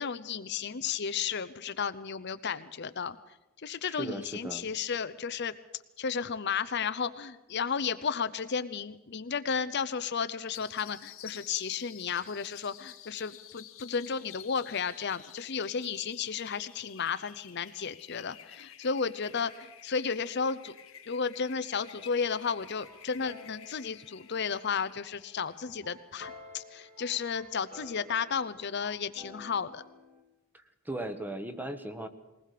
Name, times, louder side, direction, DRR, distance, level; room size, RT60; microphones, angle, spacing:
voice 1, 0.0-3.2 3.6-5.5 6.0-20.7 21.1-29.8, left 6 dB, 55° left, 12 dB, 0.7 m, -33 dB
voice 2, 3.8-4.7 30.5-32.1, right 1 dB, 10° right, 8 dB, 1.2 m, -38 dB
sound 1, 10.5-25.7, left 11 dB, 85° left, 2.0 m, -51 dB
sound 2, 21.9-30.2, left 2 dB, 30° right, 2.2 m, -53 dB
21.0 x 19.5 x 6.7 m, 1.0 s
head